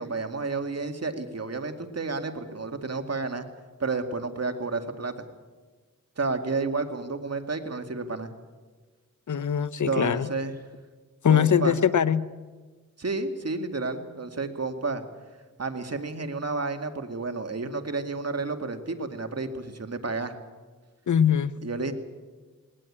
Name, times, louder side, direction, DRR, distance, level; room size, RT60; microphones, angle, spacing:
voice 1, 0.0-3.4 3.8-5.2 6.2-8.3 9.9-10.5 11.3-11.8 13.0-15.0 15.6-20.4 21.6-21.9, right 3 dB, 50° right, 6 dB, 2.3 m, -31 dB
voice 2, 9.3-10.3 11.2-12.2 21.1-21.5, left 8 dB, 60° left, 16 dB, 0.8 m, -22 dB
20.0 x 18.5 x 8.8 m, 1.4 s
cardioid pair, 50°, 33 cm